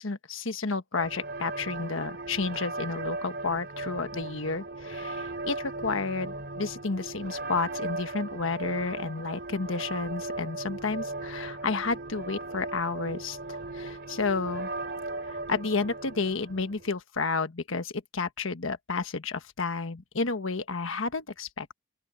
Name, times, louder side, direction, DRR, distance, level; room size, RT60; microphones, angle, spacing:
voice 1, 0.0-13.4 13.7-14.7 15.3-21.7, left 4 dB, 75° left, 1.3 m, -31 dB
sound 1, 0.9-17.0, right 2 dB, 50° right, 4.1 m, -37 dB
open air
head